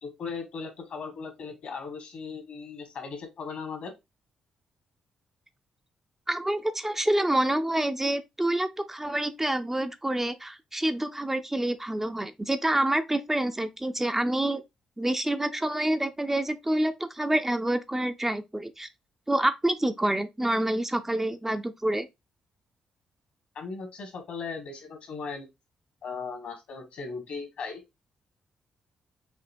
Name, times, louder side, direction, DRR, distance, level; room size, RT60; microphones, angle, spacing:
voice 1, 0.0-3.9 23.5-25.5 26.0-27.8, left 5 dB, 65° left, 1.5 m, -37 dB
voice 2, 6.3-14.6 15.0-18.9 19.3-22.1, right 1 dB, 15° right, 0.5 m, -27 dB
5.1 x 2.8 x 2.6 m
hypercardioid pair, 40°, 2 cm